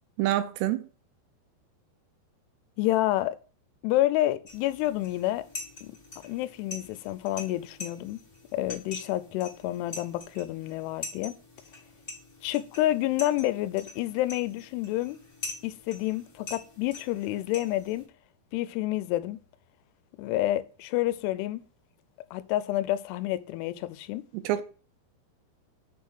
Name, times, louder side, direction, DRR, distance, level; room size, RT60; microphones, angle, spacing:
voice 1, 0.2-0.9 24.3-24.6, right 13 dB, 85° right, 2.7 m, -27 dB
voice 2, 2.8-3.4 3.8-5.5 5.8-5.9 6.2-8.2 8.5-11.4 12.4-15.2 15.6-18.0 18.5-19.4 20.2-21.6 22.3-24.3, left 15 dB, 90° left, 2.6 m, -29 dB
sound 1, 4.5-18.1, left 3 dB, 35° left, 1.1 m, -44 dB
6.6 x 3.8 x 6.1 m
omnidirectional pair, 4.7 m